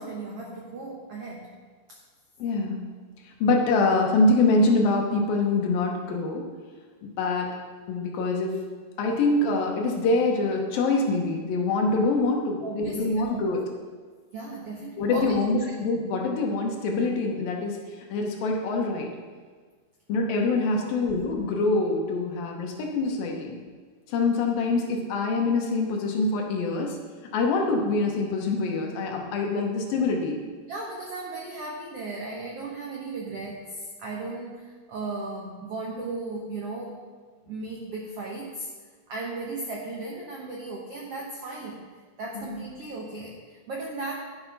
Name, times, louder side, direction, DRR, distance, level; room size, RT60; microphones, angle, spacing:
voice 1, 0.0-1.5 1.9-2.0 12.6-13.4 14.3-15.7 20.8-21.0 30.7-37.0 37.5-38.7 39.1-41.8 42.2-44.2, right 2 dB, 85° right, -1 dB, 1.3 m, -36 dB
voice 2, 2.4-2.9 3.4-6.5 7.0-7.5 7.9-8.6 9.0-13.6 15.0-17.8 18.1-19.1 20.1-23.6 24.1-27.0 27.3-30.4 42.4-42.6, left 3 dB, 75° left, 1 dB, 2.8 m, -25 dB
11.0 x 6.8 x 5.5 m, 1.5 s
omnidirectional pair, 4.5 m